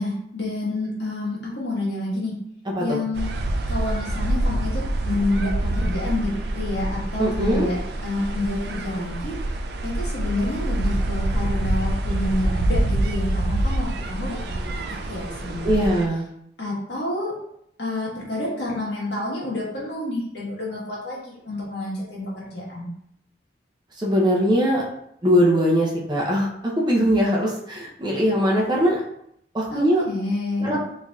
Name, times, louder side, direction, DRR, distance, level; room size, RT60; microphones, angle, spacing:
voice 1, 0.0-2.4 2.8-3.3 3.7-9.3 9.8-15.9 16.6-17.3 17.8-22.9 29.7-30.8, left 2 dB, 70° left, -5 dB, 1.4 m, -29 dB
voice 2, 2.7-3.0 7.2-7.7 15.6-16.3 24.0-24.8 25.2-29.0 29.5-30.0 30.6-30.8, equal, 25° right, -3 dB, 0.7 m, -21 dB
sound 1, 3.2-16.1, right 1 dB, 60° right, 0.4 m, -26 dB
3.9 x 3.2 x 2.4 m, 0.71 s
head